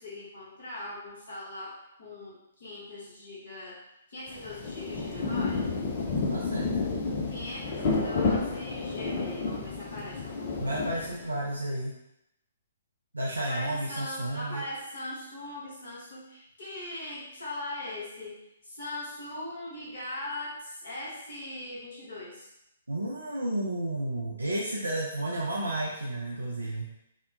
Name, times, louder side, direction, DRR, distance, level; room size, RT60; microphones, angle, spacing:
voice 1, 0.0-3.8 4.1-5.7 7.3-10.7 13.4-18.4 18.6-22.5, left 1 dB, 55° left, -8 dB, 0.9 m, -40 dB
Rain, 4.3-11.5, left 4 dB, 40° left, 0.4 m, -31 dB
voice 2, 6.3-6.8 10.6-11.9 13.1-14.6 22.9-26.9, right 1 dB, 75° right, -3 dB, 0.4 m, -32 dB
2.8 x 2.1 x 2.4 m, 0.84 s
figure-of-eight pair, 125°, 0 cm